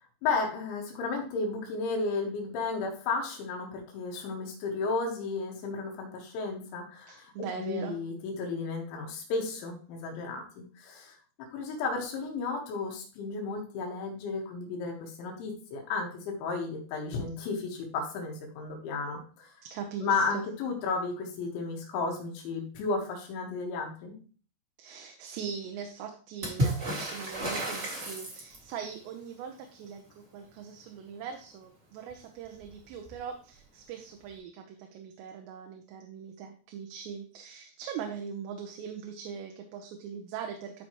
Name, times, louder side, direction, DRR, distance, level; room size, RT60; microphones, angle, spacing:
voice 1, 0.2-7.3 7.6-11.2 11.5-19.5 20.0-24.2, left 4 dB, 80° left, 1 dB, 3.9 m, -33 dB
voice 2, 7.1-8.0 19.6-20.4 24.8-40.9, right 7 dB, 80° right, 3 dB, 2.9 m, -41 dB
Water / Splash splatter, 26.4-28.8 32.1-32.2 32.4-33.2 34.3-34.4, right 1 dB, 40° right, 0.9 m, -32 dB
12.5 x 4.7 x 3.0 m, 0.41 s
omnidirectional pair, 5.3 m